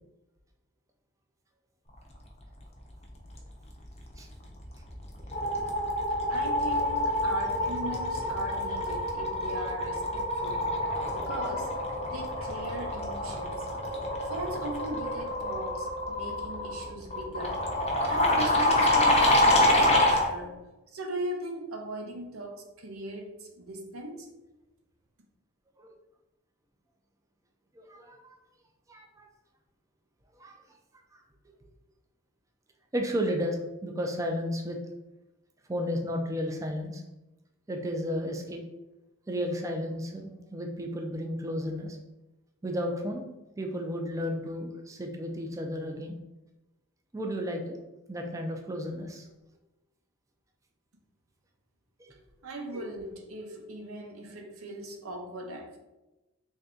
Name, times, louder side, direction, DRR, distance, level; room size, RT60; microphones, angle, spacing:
sound 1, 4.4-4.8 5.0-20.3, left 1 dB, 30° left, 0.6 m, -27 dB
voice 1, 6.3-10.7 11.1-11.7 12.0-13.7 14.2-17.7 18.1-20.7 20.9-24.3 52.4-55.8, right 1 dB, 80° right, 0.7 m, -39 dB
voice 2, 27.8-28.4 28.9-29.3 30.4-30.6 31.1-31.2 32.9-34.8 35.7-37.0 37.7-38.6 39.3-42.0 42.6-43.3 43.6-46.1 47.1-47.8 48.1-49.3 52.0-52.1, equal, 15° right, 0.4 m, -33 dB
3.3 x 2.7 x 3.6 m
head